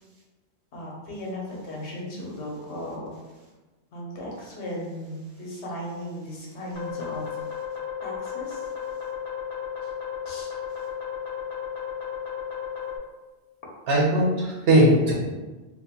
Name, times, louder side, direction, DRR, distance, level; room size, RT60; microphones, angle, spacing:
voice 1, 0.7-3.1 3.9-7.3 8.0-8.6 10.3-10.5, equal, 80° left, -3 dB, 1.0 m, -36 dB
sound 1, 6.7-13.0, left 8 dB, 45° left, 0.4 m, -34 dB
voice 2, 13.9-15.1, right 1 dB, 70° right, -3 dB, 0.9 m, -19 dB
2.5 x 2.1 x 2.7 m, 1.2 s
omnidirectional pair, 1.1 m